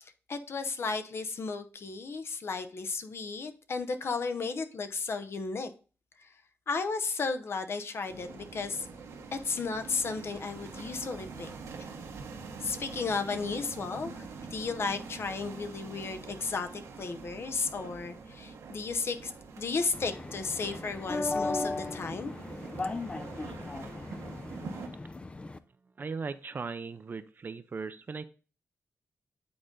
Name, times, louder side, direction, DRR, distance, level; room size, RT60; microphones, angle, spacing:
voice 1, 0.0-5.7 6.7-8.9 9.3-11.5 12.6-14.2 14.5-19.3 19.6-22.3, left 4 dB, 55° left, 0.8 m, -34 dB
sound 1, 8.1-24.9, right 4 dB, 90° right, 1.5 m, -45 dB
sound 2, 19.9-25.6, left 3 dB, 25° left, 0.5 m, -36 dB
voice 2, 26.0-28.2, right 4 dB, 40° right, 0.5 m, -38 dB
8.7 x 3.9 x 3.7 m
cardioid pair, 90°, 5 cm